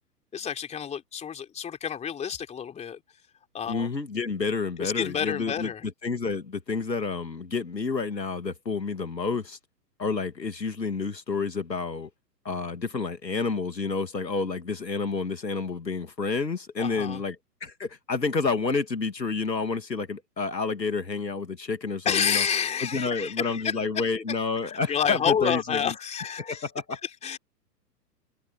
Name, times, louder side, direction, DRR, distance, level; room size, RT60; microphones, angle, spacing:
voice 1, 0.3-3.0 3.5-3.9 4.8-5.9 16.8-17.2 22.1-24.0 24.6-27.4, left 8 dB, 15° left, 3.4 m, -29 dB
voice 2, 3.7-5.7 6.0-9.6 10.0-12.1 12.4-17.4 17.6-22.5 22.8-25.9 26.5-27.0, left 4 dB, 80° left, 2.7 m, -29 dB
figure-of-eight pair, 115°, 49 cm